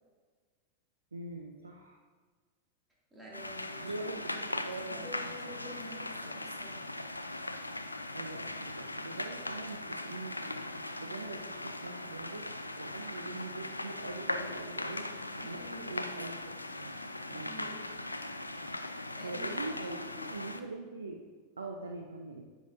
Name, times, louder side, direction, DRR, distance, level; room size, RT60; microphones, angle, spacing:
voice 1, 1.1-2.0 3.8-5.3 8.1-10.6 11.0-12.4 12.8-15.1 15.4-17.0 17.3-17.6 19.2-21.2 21.6-22.4, right 3 dB, 75° right, 2 dB, 0.6 m, -43 dB
voice 2, 3.1-4.5 4.9-6.9 15.4-15.9 17.3-18.0 19.2-20.3, left 1 dB, 10° right, -5 dB, 2.3 m, -49 dB
sound 1, 3.3-20.6, left 2 dB, 85° left, 0.4 m, -39 dB
9.9 x 7.2 x 2.6 m, 1.5 s
figure-of-eight pair, 90°, 0 cm